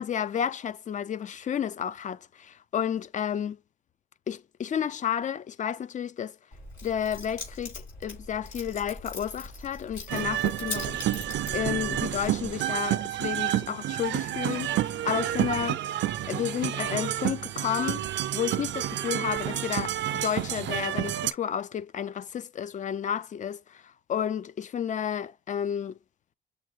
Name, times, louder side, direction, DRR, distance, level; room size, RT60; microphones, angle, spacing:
voice 1, 0.0-3.6 4.3-6.4 6.8-11.0 11.5-16.0 16.3-18.0 18.3-26.0, left 9 dB, 40° left, 0.4 m, -31 dB
Keys jangling, 6.5-12.5, left 3 dB, 70° left, 3.7 m, -41 dB
sound 1, 10.1-21.3, right 12 dB, 65° right, 0.4 m, -29 dB
6.6 x 2.3 x 3.1 m
cardioid pair, 90°, 20 cm